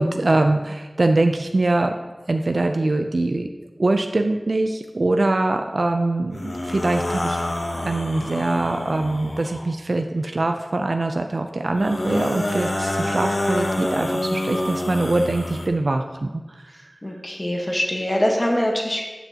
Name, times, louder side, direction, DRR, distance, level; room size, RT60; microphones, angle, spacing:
voice 1, 0.0-1.9 2.3-3.5 3.8-7.4 7.8-16.7, right 2 dB, 75° right, 5 dB, 0.4 m, -23 dB
sound 1, 6.3-9.7 11.7-15.7, left 1 dB, 80° left, 0.8 m, -27 dB
voice 2, 17.0-19.0, equal, 35° left, 0 dB, 1.2 m, -23 dB
10.0 x 6.1 x 2.8 m, 1.2 s
wide cardioid pair, 40°, 0 cm